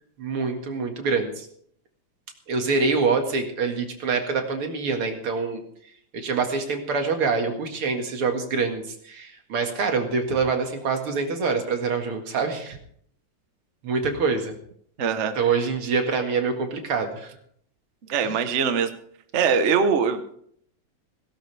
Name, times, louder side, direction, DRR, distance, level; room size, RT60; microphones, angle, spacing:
voice 1, 0.2-1.5 2.5-5.6 6.1-12.8 13.8-14.6 15.3-17.3 18.2-18.4, right 4 dB, 75° right, 4 dB, 2.8 m, -25 dB
voice 2, 15.0-15.3 18.1-18.9 19.3-20.3, right 6 dB, 45° right, 8 dB, 1.1 m, -22 dB
17.0 x 17.0 x 3.4 m, 0.65 s
omnidirectional pair, 2.4 m